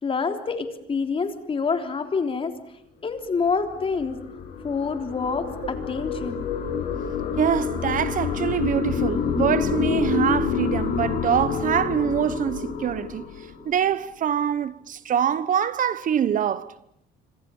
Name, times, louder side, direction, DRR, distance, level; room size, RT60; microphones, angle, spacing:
voice 1, 0.0-2.5 3.0-4.2 4.6-6.5, left 5 dB, 35° left, 3.5 m, -27 dB
sound 1, 3.3-13.9, left 6 dB, 70° left, 7.0 m, -28 dB
voice 2, 7.4-13.2 13.6-16.7, right 9 dB, 50° right, 1.2 m, -24 dB
26.0 x 25.5 x 7.2 m
cardioid pair, 110°, 17 cm